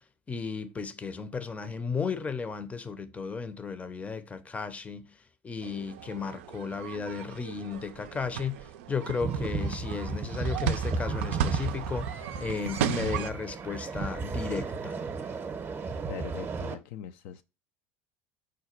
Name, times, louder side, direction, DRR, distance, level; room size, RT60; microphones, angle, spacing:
voice 1, 0.3-5.1 5.4-15.0, left 5 dB, 20° left, 0.6 m, -34 dB
sound 1, 5.6-13.3, right 8 dB, 80° right, 0.4 m, -35 dB
sound 2, 9.2-16.7, right 4 dB, 30° right, 0.7 m, -34 dB
voice 2, 16.1-17.4, left 10 dB, 70° left, 0.3 m, -41 dB
4.9 x 2.2 x 4.3 m
hypercardioid pair, 85°, 7 cm